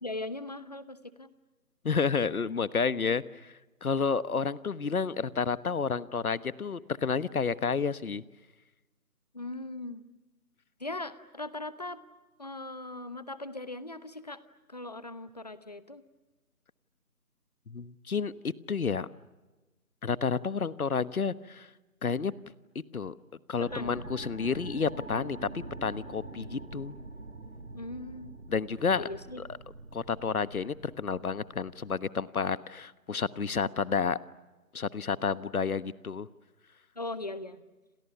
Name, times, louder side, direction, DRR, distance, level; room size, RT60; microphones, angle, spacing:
voice 1, 0.0-1.3 9.3-10.0 10.8-12.0 12.4-14.4 14.7-16.0 23.6-24.1 27.7-28.4 28.9-29.4 37.0-37.6, left 2 dB, 25° left, 14 dB, 1.0 m, -39 dB
voice 2, 1.8-3.5 3.8-8.2 17.7-19.1 20.0-21.7 22.0-22.3 22.9-23.1 23.5-26.9 28.5-29.1 29.9-34.2 34.7-36.3, left 5 dB, 70° left, 16 dB, 1.3 m, -30 dB
sound 1, 23.6-31.9, right 2 dB, 55° right, 4.1 m, -45 dB
29.0 x 27.0 x 7.0 m, 1.2 s
figure-of-eight pair, 170°, 45 cm